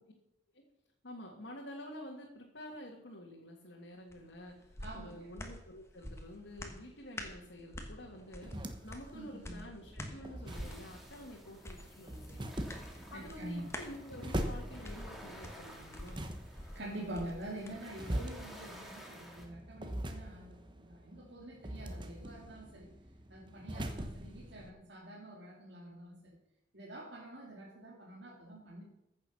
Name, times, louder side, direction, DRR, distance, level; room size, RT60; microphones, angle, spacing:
voice 1, 1.0-12.5 13.1-16.3, left 1 dB, 80° left, -2 dB, 2.1 m, -49 dB
sound 1, 4.1-17.8 18.2-18.3, left 1 dB, 15° left, 1.3 m, -49 dB
voice 2, 4.8-5.3 9.1-9.7 13.1-13.7 16.7-22.9 23.3-26.3 26.7-28.8, right 1 dB, 65° right, -4 dB, 2.3 m, -46 dB
sound 2, 8.0-24.7, right 1 dB, 25° right, 1.1 m, -43 dB
sound 3, 10.5-19.4, equal, ahead, 2.1 m, -54 dB
15.0 x 6.8 x 6.3 m, 0.86 s
head